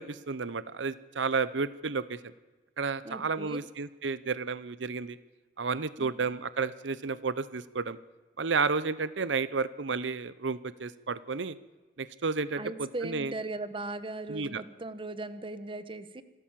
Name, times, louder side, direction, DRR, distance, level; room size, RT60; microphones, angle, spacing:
voice 1, 0.0-2.3 2.8-5.2 5.6-8.0 8.4-11.6 12.0-13.3 14.3-14.6, right 4 dB, 75° right, 16 dB, 0.8 m, -32 dB
voice 2, 3.0-3.6 6.0-6.1 12.6-16.2, right 2 dB, 30° right, 13 dB, 1.1 m, -38 dB
27.0 x 13.5 x 7.5 m, 1.2 s
head